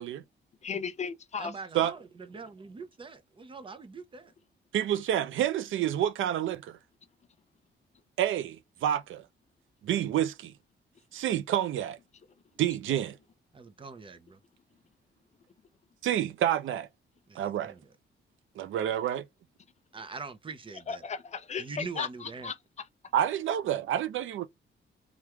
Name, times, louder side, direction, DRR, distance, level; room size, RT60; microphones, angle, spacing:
voice 1, 0.6-1.5 20.9-22.5, left 6 dB, 35° left, 0.5 m, -35 dB
voice 2, 1.4-4.3 13.5-14.4 17.3-17.9 19.9-21.0 21.6-22.5, right 4 dB, 25° right, 0.6 m, -43 dB
voice 3, 4.7-6.8 8.2-9.2 9.8-10.5 11.1-12.0 12.6-13.2 16.0-16.9 17.4-17.7 18.6-19.2 23.1-24.5, right 11 dB, 85° right, 0.5 m, -28 dB
3.4 x 2.3 x 2.9 m
wide cardioid pair, 145°, 20 cm